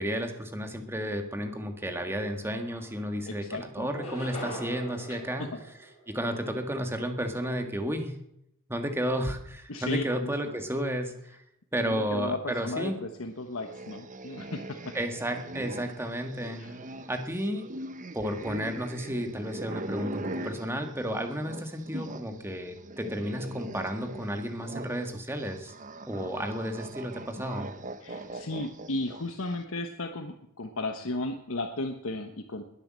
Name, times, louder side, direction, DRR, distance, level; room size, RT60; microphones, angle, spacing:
voice 1, 0.0-5.5 6.1-8.2 8.7-11.4 11.7-13.0 14.9-16.6 17.1-17.7 18.1-25.7 26.1-27.7, equal, 10° right, 5 dB, 1.8 m, -32 dB
sound 1, 2.6-3.3 3.8-6.4, equal, 30° left, 6.1 m, -42 dB
voice 2, 3.3-3.9 5.1-5.6 9.7-10.5 11.8-14.9 16.6-16.8 21.9-22.2 28.0-32.6, left 2 dB, 70° left, 5 dB, 1.2 m, -35 dB
sound 2, 13.6-22.3 22.6-29.4, right 2 dB, 35° right, 1.0 m, -41 dB
21.5 x 8.5 x 7.6 m, 0.81 s
head